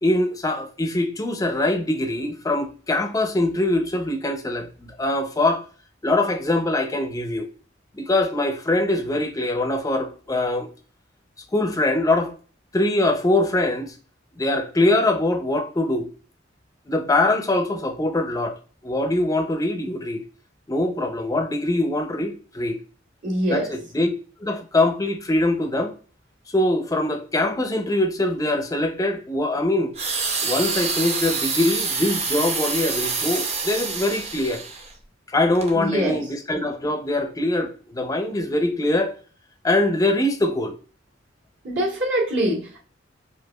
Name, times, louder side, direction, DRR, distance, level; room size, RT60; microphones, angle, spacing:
voice 1, 0.0-5.6 6.0-7.5 8.0-10.7 11.5-12.3 12.7-13.9 14.4-16.1 16.9-18.5 18.8-20.2 20.7-22.8 23.5-24.1 24.4-25.9 26.5-29.9 30.4-34.7 35.3-39.1 39.6-40.8, left 2 dB, 20° left, 0.5 m, -23 dB
voice 2, 23.2-23.7 35.7-36.2 41.6-42.8, equal, 65° right, 1.6 m, -24 dB
sound 1, 29.9-34.9 35.5-35.7, right 4 dB, 35° right, 0.6 m, -27 dB
4.7 x 2.4 x 2.2 m
head